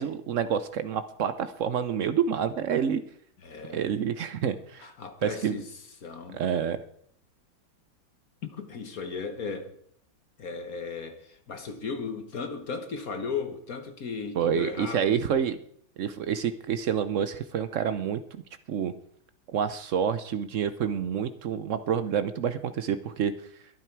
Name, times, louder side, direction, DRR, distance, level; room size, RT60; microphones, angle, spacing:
voice 1, 0.0-3.0 3.7-4.9 5.2-5.6 6.3-6.8 14.3-15.6 16.0-18.2 18.7-18.9 19.5-23.3, right 8 dB, 85° right, 0.6 m, -28 dB
voice 2, 3.4-3.8 4.4-4.5 4.8-5.7 6.0-6.7 8.4-9.7 10.4-15.1, left 5 dB, 50° left, 1.5 m, -36 dB
22.5 x 9.2 x 4.6 m
omnidirectional pair, 2.2 m